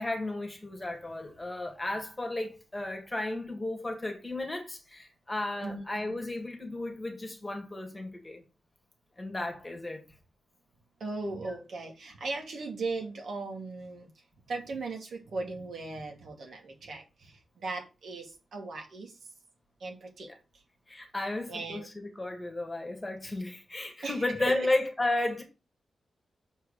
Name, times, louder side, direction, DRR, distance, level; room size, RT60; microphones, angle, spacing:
voice 1, 0.0-8.4 9.2-10.0 11.4-11.6 20.9-25.4, left 2 dB, 10° left, 1.9 m, -33 dB
voice 2, 5.6-6.0 11.0-19.3 19.8-20.3 20.5-20.6 21.5-21.9 24.0-24.7, right 3 dB, 65° right, 2.5 m, -38 dB
6.6 x 4.7 x 6.6 m
wide cardioid pair, 170°, 0 cm